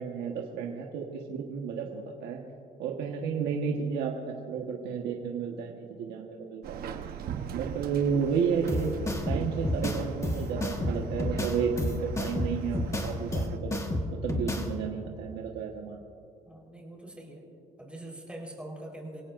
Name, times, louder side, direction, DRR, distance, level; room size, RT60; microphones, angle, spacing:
voice 1, 0.0-2.4 2.8-6.8 7.5-8.9 9.3-13.8 14.1-16.0, right 6 dB, 80° right, 0 dB, 1.4 m, -32 dB
Subway metro underground, 6.6-13.6, right 8 dB, 65° right, 1.0 m, -40 dB
sound 1, 8.7-14.7, left 1 dB, 15° left, 1.5 m, -31 dB
voice 2, 16.5-17.4 17.8-19.2, right 1 dB, 5° right, -1 dB, 4.3 m, -43 dB
26.5 x 17.0 x 2.6 m, 2.5 s
cardioid pair, 110°, 17 cm